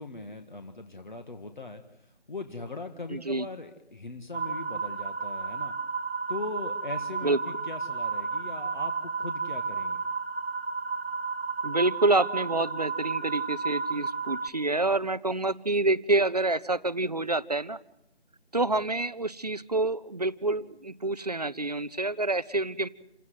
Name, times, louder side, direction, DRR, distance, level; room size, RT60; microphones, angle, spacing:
voice 1, 0.0-5.7 6.3-10.0, left 3 dB, 45° left, 6 dB, 1.9 m, -40 dB
voice 2, 3.1-3.4 7.2-7.4 11.6-17.8 18.5-22.9, right 2 dB, 35° right, 16 dB, 0.8 m, -27 dB
sound 1, 4.3-14.5, right 4 dB, 65° right, 1.5 m, -32 dB
29.0 x 17.0 x 7.9 m, 0.83 s
figure-of-eight pair, 165°, 33 cm